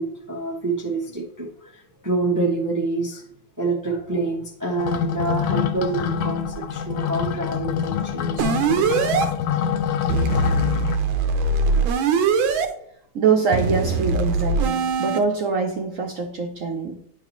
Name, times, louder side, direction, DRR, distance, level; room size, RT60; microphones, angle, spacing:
voice 1, 0.0-3.2 3.6-9.1, right 3 dB, 30° right, -1 dB, 0.3 m, -27 dB
sound 1, 4.8-11.0, left 8 dB, 75° left, 0.8 m, -25 dB
sound 2, 8.4-9.3 10.1-12.7 13.5-15.2, right 4 dB, 85° right, 1.5 m, -21 dB
voice 2, 13.1-17.0, right 5 dB, 60° right, 4 dB, 0.8 m, -23 dB
10.0 x 4.7 x 3.0 m, 0.73 s
omnidirectional pair, 2.1 m